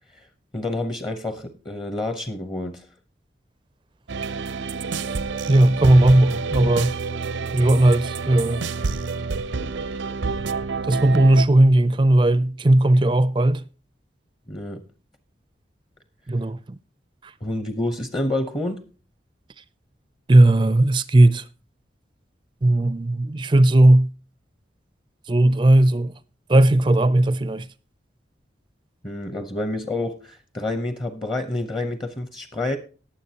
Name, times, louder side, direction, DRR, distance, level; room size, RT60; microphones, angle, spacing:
voice 1, 0.5-2.9 14.5-14.8 17.4-18.8 29.0-32.8, left 2 dB, 25° left, 0.8 m, -28 dB
sound 1, 4.1-11.5, right 4 dB, 90° right, 0.6 m, -28 dB
voice 2, 5.5-6.9 7.5-8.6 10.9-13.6 16.3-16.8 20.3-21.4 22.6-24.1 25.3-26.1 26.5-27.7, right 1 dB, 25° right, 0.4 m, -17 dB
19.0 x 7.2 x 2.9 m
head